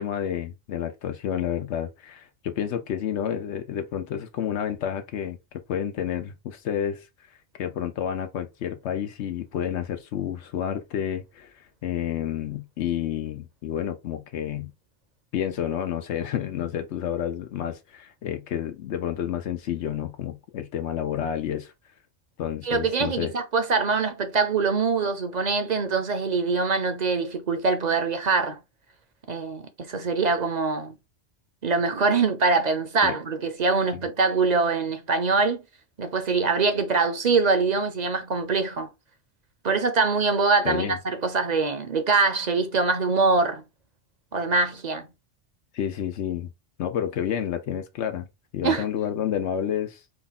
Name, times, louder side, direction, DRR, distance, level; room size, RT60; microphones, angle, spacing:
voice 1, 0.0-5.4 5.7-14.7 15.3-21.7 22.4-23.3 33.0-33.2 40.6-41.0 45.7-46.5 46.8-48.3 48.5-50.0, left 9 dB, 90° left, 1.0 m, -30 dB
voice 2, 22.6-28.6 29.3-30.9 31.6-35.6 36.0-38.9 39.6-43.6 44.3-45.1 48.6-48.8, right 4 dB, 45° right, 0.7 m, -23 dB
4.4 x 2.3 x 4.0 m
omnidirectional pair, 1.1 m